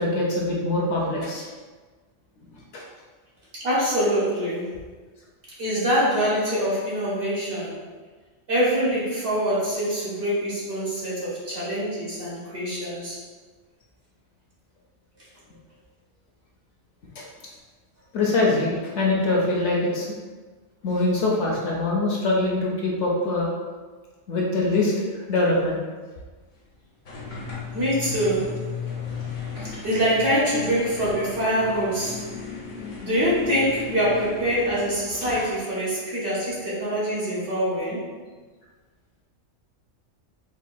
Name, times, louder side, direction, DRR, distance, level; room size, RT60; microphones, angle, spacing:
voice 1, 0.0-1.5 2.7-2.8 17.2-17.3 18.1-20.1 20.8-23.5 24.3-25.8, left 2 dB, 70° left, -3 dB, 0.9 m, -23 dB
voice 2, 3.5-4.8 5.6-7.8 8.5-13.2 27.7-28.6 29.5-32.3 33.0-38.0, equal, 50° right, -8 dB, 1.1 m, -24 dB
sound 1, 27.0-35.6, left 4 dB, 45° left, 0.7 m, -35 dB
3.9 x 2.2 x 2.5 m, 1.4 s
omnidirectional pair, 1.3 m